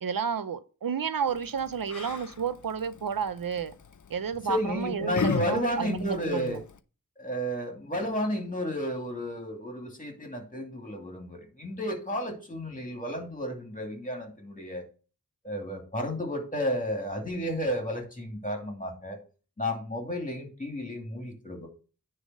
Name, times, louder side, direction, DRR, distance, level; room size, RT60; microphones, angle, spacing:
voice 1, 0.0-3.7 4.1-6.6, right 7 dB, 80° right, 0.6 m, -31 dB
Yell, 1.3-6.8, left 6 dB, 60° left, 0.6 m, -37 dB
voice 2, 4.5-6.6 7.2-14.8 15.4-19.2 19.6-21.7, equal, 25° left, 2.5 m, -32 dB
9.8 x 3.5 x 6.3 m
wide cardioid pair, 55°, 34 cm